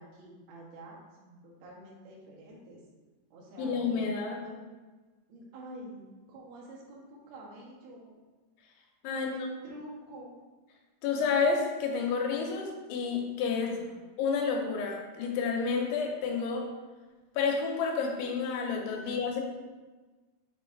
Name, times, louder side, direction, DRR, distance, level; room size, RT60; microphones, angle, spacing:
voice 1, 0.0-2.8 3.3-4.6 5.3-8.1 9.1-10.4 13.5-14.1 19.0-19.1, right 1 dB, 70° right, -4 dB, 3.2 m, -48 dB
voice 2, 3.6-4.4 9.0-9.3 11.0-13.7 14.2-16.7 17.4-19.4, left 5 dB, 90° left, 1 dB, 3.2 m, -30 dB
7.9 x 3.2 x 4.4 m, 1.3 s
omnidirectional pair, 5.2 m